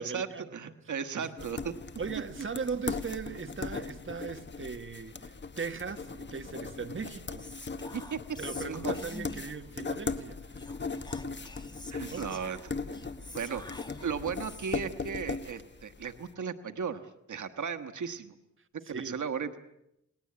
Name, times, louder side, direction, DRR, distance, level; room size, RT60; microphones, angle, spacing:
voice 1, 0.0-0.7 1.1-1.5 2.0-7.5 8.4-10.9 12.0-12.2 13.4-13.5 18.8-19.2, right 5 dB, 45° right, 1.7 m, -39 dB
voice 2, 0.5-1.7 7.9-8.2 8.7-8.9 11.9-12.6 13.3-13.6 14.0-18.3 18.9-19.7, right 6 dB, 90° right, 1.4 m, -36 dB
sound 1, 1.4-16.2, left 4 dB, 40° left, 1.3 m, -39 dB
Whispering, 7.4-9.7 10.5-15.0, left 2 dB, 15° left, 2.2 m, -48 dB
29.0 x 20.0 x 8.7 m
wide cardioid pair, 110°, 29 cm